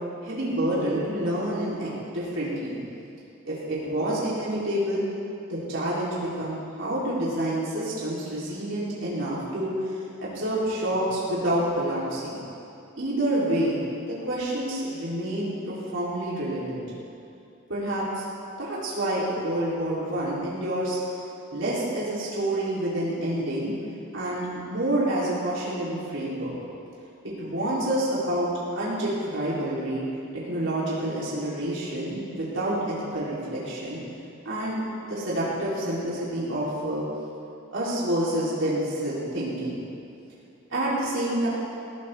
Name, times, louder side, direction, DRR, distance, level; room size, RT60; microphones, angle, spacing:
voice 1, 0.2-2.8 3.5-5.0 5.5-12.4 13.0-13.8 14.2-16.8 17.7-18.2 18.6-21.0 21.5-23.7 24.1-26.5 27.2-30.0 30.4-34.0 34.4-34.8 35.1-37.0 37.7-39.8 40.7-41.5, right 1 dB, 65° right, -8 dB, 4.4 m, -28 dB
20.5 x 16.0 x 3.9 m, 2.7 s
head